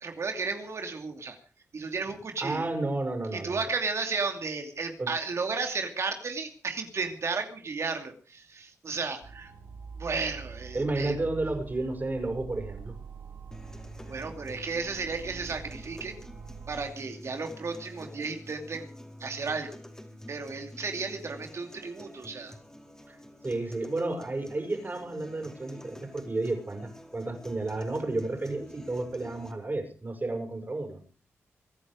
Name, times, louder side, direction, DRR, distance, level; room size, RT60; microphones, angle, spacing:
voice 1, 0.0-1.4 1.7-2.7 3.3-9.5 10.0-11.1 14.1-16.1 16.7-18.9 19.2-19.8 20.3-22.5, right 4 dB, 65° right, 5 dB, 2.7 m, -33 dB
voice 2, 2.4-3.7 5.0-5.1 10.7-12.9 23.1-23.2 23.4-31.0, right 2 dB, 35° right, 7 dB, 6.3 m, -32 dB
sound 1, 9.2-16.8, right 5 dB, 80° right, 5.4 m, -45 dB
sound 2, 13.5-29.5, left 1 dB, 10° left, 4.5 m, -48 dB
25.0 x 10.0 x 5.1 m, 0.39 s
cardioid pair, 55°, 5 cm